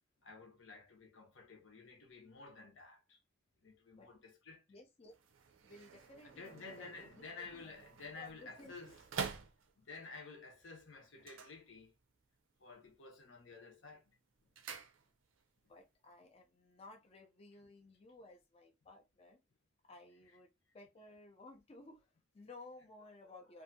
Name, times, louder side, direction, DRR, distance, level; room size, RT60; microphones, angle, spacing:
voice 1, 0.2-3.2 3.6-4.6 6.2-8.9 9.8-11.9 12.6-14.0, left 4 dB, 75° left, 0.8 m, -52 dB
voice 2, 4.7-5.2 5.6-7.7 8.1-8.7 15.7-19.4 19.8-23.6, left 2 dB, 30° left, 0.4 m, -57 dB
sound 1, 5.1-10.1 11.1-12.3 12.6-13.1 13.4-15.5 15.8-15.9, right 6 dB, 80° right, 0.5 m, -48 dB
2.6 x 2.4 x 2.6 m
head